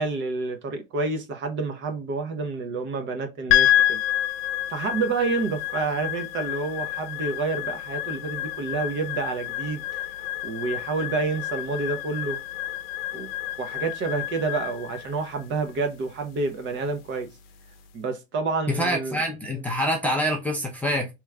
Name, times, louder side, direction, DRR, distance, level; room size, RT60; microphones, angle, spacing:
voice 1, 0.0-4.0 4.7-12.4 13.1-13.3 13.6-17.3 17.9-19.2, right 4 dB, 35° right, 0.8 m, -29 dB
sound 1, 3.5-17.9, left 13 dB, 60° left, 0.7 m, -29 dB
voice 2, 18.7-21.1, equal, 5° left, 0.6 m, -26 dB
3.1 x 3.0 x 2.3 m
supercardioid pair, 115°, 33 cm